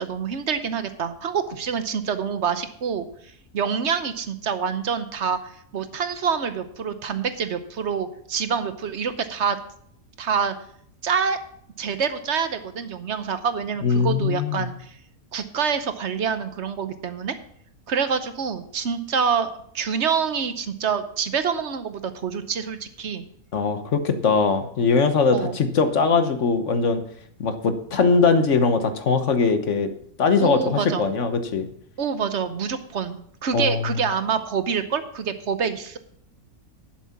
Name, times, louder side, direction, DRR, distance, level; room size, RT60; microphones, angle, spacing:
voice 1, 0.0-3.0 3.5-9.6 10.2-10.5 11.0-11.4 11.8-14.9 15.3-17.4 17.9-19.5 19.7-23.2 25.3-25.6 30.4-31.0 32.0-36.0, right 6 dB, 55° right, 10 dB, 1.1 m, -26 dB
voice 2, 13.8-14.7 23.5-27.0 27.4-29.9 30.2-31.7 33.5-34.0, left 4 dB, 55° left, 9 dB, 1.3 m, -21 dB
11.0 x 7.4 x 5.8 m, 0.66 s
omnidirectional pair, 1.5 m